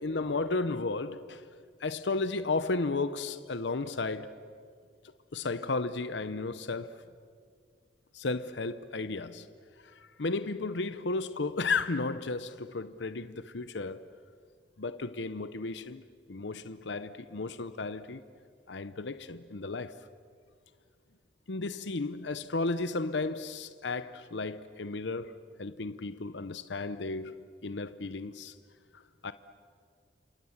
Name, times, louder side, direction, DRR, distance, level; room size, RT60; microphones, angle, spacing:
voice 1, 0.0-1.4 1.8-4.3 5.3-7.0 8.1-9.5 9.8-14.1 14.8-16.0 16.3-18.2 18.7-20.0 21.5-25.3 25.6-28.5 28.9-29.3, left 3 dB, 75° left, 0.8 m, -34 dB
29.5 x 27.0 x 7.3 m
head